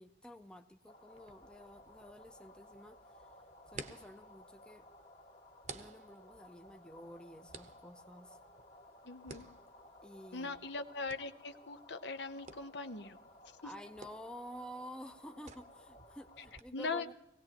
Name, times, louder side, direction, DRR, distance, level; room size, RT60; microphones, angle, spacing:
voice 1, 0.0-3.3 3.7-4.8 5.7-8.4 10.0-10.6 13.6-17.1, equal, 5° left, 7 dB, 0.6 m, -51 dB
sound 1, 0.9-16.6, left 1 dB, 55° left, 1.8 m, -59 dB
sound 2, 1.1-16.6, right 4 dB, 40° right, 0.9 m, -55 dB
voice 2, 9.0-9.5 10.3-13.2 16.7-17.1, left 3 dB, 85° left, 8 dB, 0.9 m, -40 dB
19.5 x 17.5 x 2.9 m, 0.86 s
head